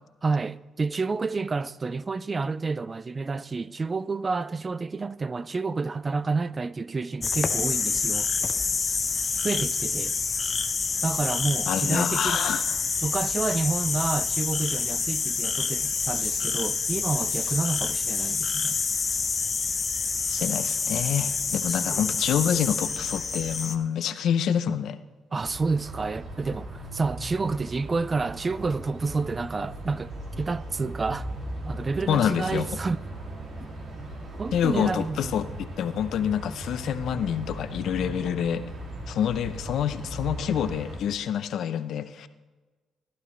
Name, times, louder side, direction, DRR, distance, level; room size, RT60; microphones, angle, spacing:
voice 1, 0.2-8.3 9.4-10.1 11.0-12.5 13.0-18.8 21.8-22.2 25.3-31.3 31.7-33.0 34.4-35.3, right 4 dB, 30° right, 0.3 m, -29 dB
sound 1, 7.2-23.8, left 5 dB, 35° left, 0.8 m, -27 dB
voice 2, 11.7-12.6 20.3-25.0 32.1-32.7 34.5-35.5 35.8-38.6 39.1-42.3, left 9 dB, 70° left, 0.6 m, -27 dB
sound 2, 25.4-41.0, right 1 dB, 60° right, 2.6 m, -38 dB
15.0 x 11.0 x 3.2 m
cardioid pair, 90°, 0 cm